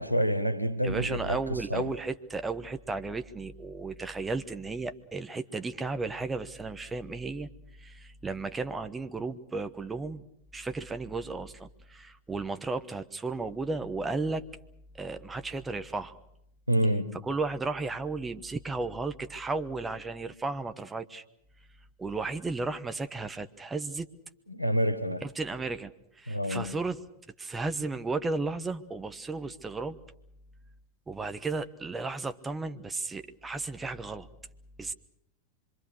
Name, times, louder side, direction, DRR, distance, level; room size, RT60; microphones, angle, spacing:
voice 1, 0.0-1.4 1.7-1.9 16.7-17.2 24.5-25.2 26.3-26.7, equal, 90° right, 1.2 m, -28 dB
voice 2, 0.8-7.5 7.8-10.2 10.5-14.4 14.9-16.2 17.2-21.2 22.0-24.1 25.2-27.0 27.4-30.0 31.1-34.3 34.8-34.9, right 3 dB, 15° right, 1.2 m, -34 dB
26.0 x 23.5 x 6.5 m
figure-of-eight pair, 90°, 0 cm